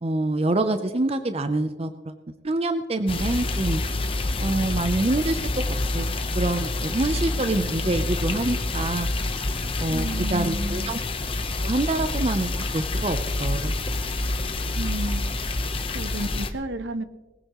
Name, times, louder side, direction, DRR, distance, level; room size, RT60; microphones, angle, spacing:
voice 1, 0.0-2.2 2.4-3.8 4.4-5.7 5.9-9.1 9.8-11.0 11.6-13.7, right 2 dB, 30° right, 9 dB, 0.6 m, -26 dB
sound 1, 3.1-16.5, left 2 dB, 30° left, 0.8 m, -27 dB
voice 2, 9.9-10.9 14.8-15.2 15.9-17.0, right 1 dB, 65° right, 11 dB, 0.9 m, -31 dB
20.0 x 15.5 x 3.0 m, 1.1 s
head